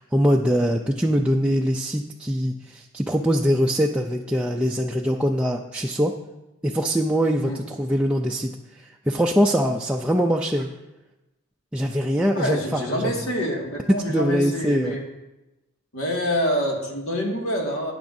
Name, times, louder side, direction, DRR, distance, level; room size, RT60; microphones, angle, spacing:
voice 1, 0.0-6.1 6.6-10.7 11.7-13.1 13.9-14.9, equal, 5° right, 0 dB, 0.3 m, -23 dB
voice 2, 12.3-15.0 15.9-17.9, equal, 75° left, -1 dB, 2.0 m, -26 dB
13.0 x 9.4 x 2.6 m, 1.0 s
head